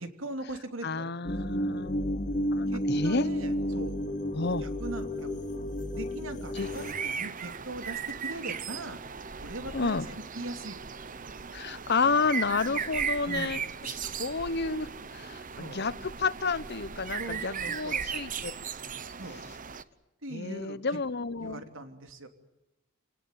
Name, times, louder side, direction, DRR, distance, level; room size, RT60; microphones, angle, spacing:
voice 1, 0.0-1.3 2.7-3.9 4.6-5.4 5.9-9.0 9.4-11.0 13.2-13.6 15.5-15.8 17.2-18.0 19.1-19.4 20.2-21.0 21.4-22.3, right 1 dB, 70° right, 7 dB, 3.1 m, -40 dB
voice 2, 0.8-3.3 4.3-4.6 6.5-6.7 9.7-10.1 11.5-13.6 13.9-18.5 20.3-21.6, left 4 dB, 55° left, 16 dB, 1.0 m, -31 dB
sound 1, 1.2-6.9, equal, 40° left, 2.6 m, -31 dB
sound 2, 6.5-19.8, right 6 dB, 40° right, 1.0 m, -37 dB
29.0 x 19.0 x 9.4 m, 0.95 s
head